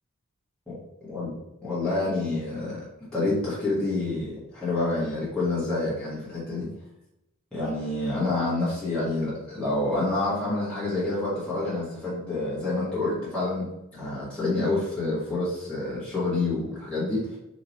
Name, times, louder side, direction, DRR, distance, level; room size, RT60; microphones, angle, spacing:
voice 1, 1.6-2.8 3.1-6.7 7.5-17.4, left 2 dB, 5° left, -11 dB, 1.2 m, -28 dB
3.0 x 2.8 x 3.8 m, 0.90 s
head